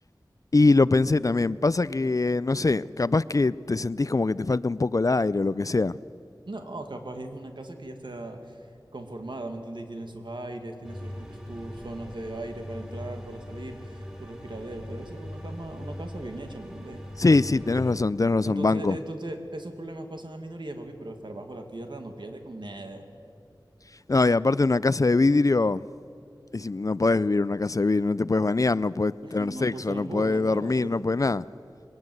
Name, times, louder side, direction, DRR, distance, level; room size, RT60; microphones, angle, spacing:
voice 1, 0.5-5.9 17.2-19.0 24.1-25.8 26.5-31.4, left 3 dB, 45° left, 0.4 m, -23 dB
voice 2, 6.5-8.6 8.9-17.0 17.7-17.8 18.4-23.1 29.2-31.2, right 1 dB, 70° right, 2.3 m, -38 dB
sound 1, 10.8-17.9, equal, 10° right, 3.5 m, -40 dB
22.0 x 18.5 x 7.9 m
wide cardioid pair, 60°, 8 cm